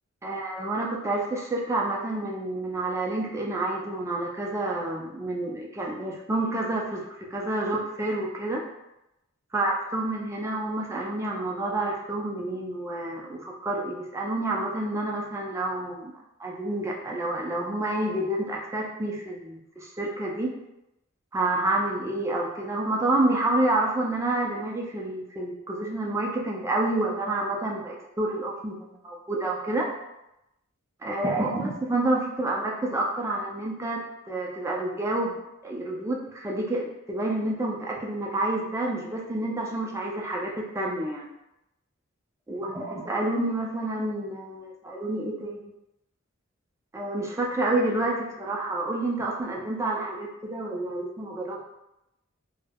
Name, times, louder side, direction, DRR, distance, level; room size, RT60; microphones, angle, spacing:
voice 1, 0.2-8.6 9.5-20.6 21.3-28.8 29.0-29.9 31.0-41.3 42.5-45.7 46.9-51.6, right 2 dB, 15° right, -2 dB, 0.3 m, -29 dB
3.3 x 2.0 x 2.2 m, 0.88 s
head